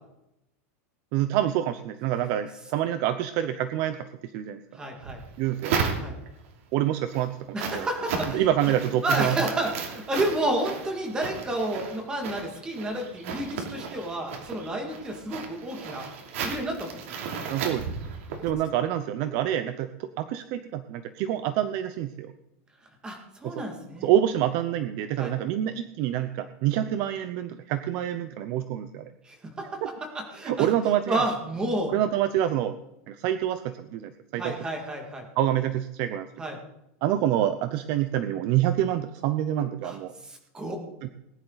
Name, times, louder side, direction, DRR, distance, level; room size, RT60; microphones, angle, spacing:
voice 1, 1.1-4.6 5.4-5.7 6.7-7.4 7.6-7.9 8.3-9.5 17.5-17.9 18.4-22.3 23.4-23.5 24.0-29.0 29.8-29.9 30.4-31.2 31.9-32.8 33.1-34.5 35.4-36.3 37.0-40.1 41.0-41.1, right 11 dB, 35° right, 11 dB, 0.6 m, -27 dB
voice 2, 4.7-5.2 6.0-6.1 7.5-8.5 9.0-16.1 16.4-17.0 19.3-19.4 23.0-24.1 25.2-25.3 29.2-30.7 31.1-31.9 34.4-35.3 36.4-36.6 39.8-40.0 40.2-40.8, right 1 dB, 10° right, 2 dB, 2.1 m, -30 dB
sound 1, 5.0-6.5 6.9-18.5, right 6 dB, 65° right, 2.9 m, -34 dB
19.5 x 10.5 x 4.0 m, 0.87 s
supercardioid pair, 180°, 8 cm